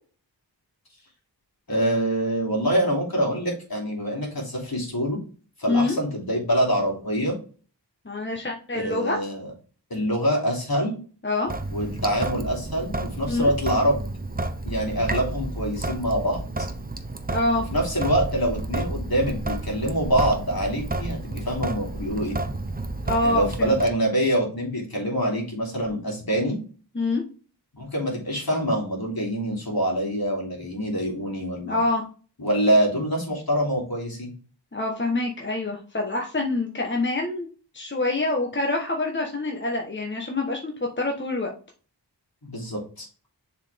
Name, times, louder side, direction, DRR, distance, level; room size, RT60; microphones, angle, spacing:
voice 1, 1.7-5.2 5.6-7.3 8.7-9.5 9.9-10.9 11.7-14.0 14.6-16.7 17.7-22.4 23.2-26.6 27.7-31.8 32.4-34.3 42.4-43.1, equal, 55° left, -1 dB, 2.9 m, -25 dB
voice 2, 8.0-9.2 11.2-11.5 13.3-13.5 17.3-17.6 23.0-23.8 26.9-27.2 31.6-32.0 34.7-37.5 37.7-41.5, left 2 dB, 25° left, 1 dB, 1.1 m, -26 dB
Sink (filling or washing) / Drip, 11.5-23.9, right 2 dB, 20° right, 0.7 m, -31 dB
7.1 x 4.3 x 3.5 m, 0.38 s
wide cardioid pair, 55°, 43 cm